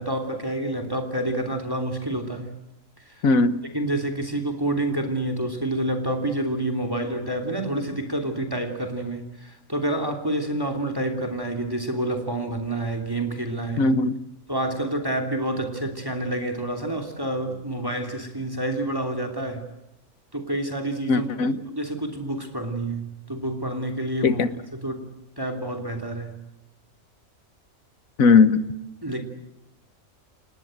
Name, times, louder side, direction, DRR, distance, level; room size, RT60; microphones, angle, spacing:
voice 1, 0.0-2.6 3.0-3.3 3.6-13.9 14.5-19.7 20.3-21.3 21.7-24.4 24.7-25.1 25.4-26.3 29.0-29.2, right 1 dB, 15° right, 6 dB, 3.1 m, -28 dB
voice 2, 3.2-3.5 13.8-14.1 21.1-21.6 24.2-24.5 28.2-28.6, left 4 dB, 90° left, 13 dB, 1.7 m, -18 dB
29.5 x 19.0 x 7.9 m, 0.90 s
omnidirectional pair, 1.4 m